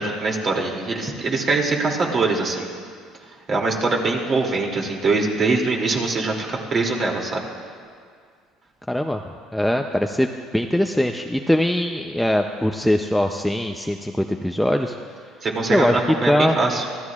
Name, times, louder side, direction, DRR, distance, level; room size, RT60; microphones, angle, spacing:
voice 1, 0.0-2.7 3.5-7.4 15.4-16.8, right 3 dB, 40° right, 0 dB, 2.6 m, -22 dB
voice 2, 8.9-9.2 9.5-14.9 15.7-16.0 16.3-16.6, left 1 dB, ahead, 4 dB, 0.5 m, -21 dB
25.0 x 14.5 x 2.4 m, 2.1 s
supercardioid pair, 110°, 0 cm